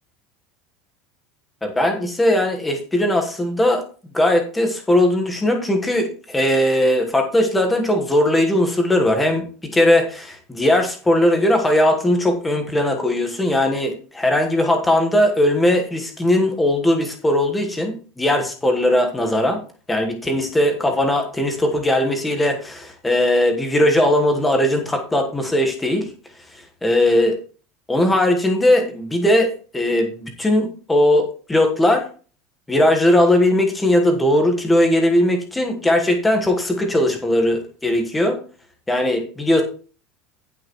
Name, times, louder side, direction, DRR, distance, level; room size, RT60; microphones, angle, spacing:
voice 1, 1.6-3.8 4.1-19.6 19.9-26.1 26.8-27.3 27.9-32.0 32.7-38.4 38.9-39.6, left 1 dB, 5° left, 4 dB, 1.3 m, -19 dB
17.0 x 5.8 x 3.1 m, 0.39 s
cardioid pair, 180°, 0 cm